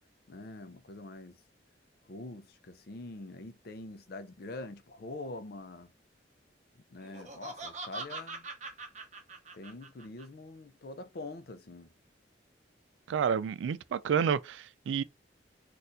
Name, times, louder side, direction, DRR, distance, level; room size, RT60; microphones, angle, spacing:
voice 1, 0.3-1.4 2.1-5.9 6.9-8.5 9.5-11.9, left 2 dB, 55° left, 0.5 m, -44 dB
Laughter, 7.0-10.2, right 3 dB, 40° right, 0.7 m, -42 dB
voice 2, 13.1-15.0, right 7 dB, 80° right, 0.3 m, -29 dB
4.2 x 2.5 x 2.6 m
head